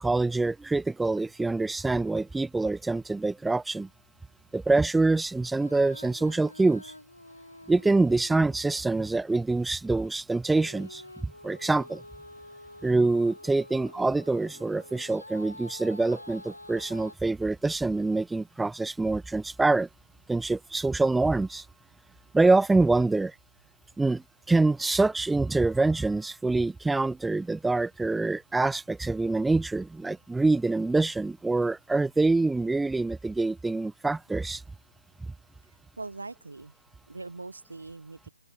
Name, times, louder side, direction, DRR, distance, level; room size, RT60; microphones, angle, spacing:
voice 1, 0.0-3.9 4.5-6.9 7.7-12.0 12.8-19.9 20.3-21.6 22.3-23.3 24.0-34.6, right 3 dB, 5° right, 0.8 m, -25 dB
Female singing, 5.5-9.2 10.4-17.2, left 1 dB, 85° left, 5.6 m, -48 dB
voice 2, 36.0-36.7 37.1-38.3, right 3 dB, 75° right, 2.5 m, -41 dB
open air
figure-of-eight pair, 135°, 0 cm